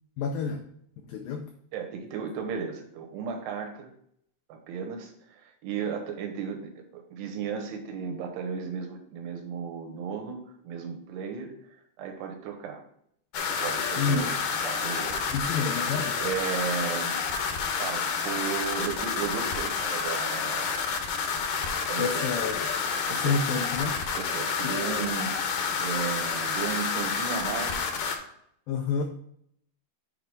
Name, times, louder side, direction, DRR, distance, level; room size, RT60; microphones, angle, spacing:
voice 1, 0.2-0.6 1.1-1.5 14.0-14.3 15.3-16.2 22.0-22.6 23.2-24.0 24.6-24.7 28.7-29.0, left 5 dB, 85° left, 5 dB, 2.0 m, -28 dB
voice 2, 1.7-3.9 4.5-10.4 10.6-11.5 12.0-12.8 13.5-14.4 14.6-15.3 16.2-17.2 17.8-21.0 21.9-22.3 23.1-23.5 24.1-27.9, right 6 dB, 80° right, 3 dB, 3.1 m, -35 dB
sound 1, 13.3-28.2, left 5 dB, 70° left, 2.2 m, -29 dB
7.7 x 4.7 x 3.9 m, 0.71 s
omnidirectional pair, 4.9 m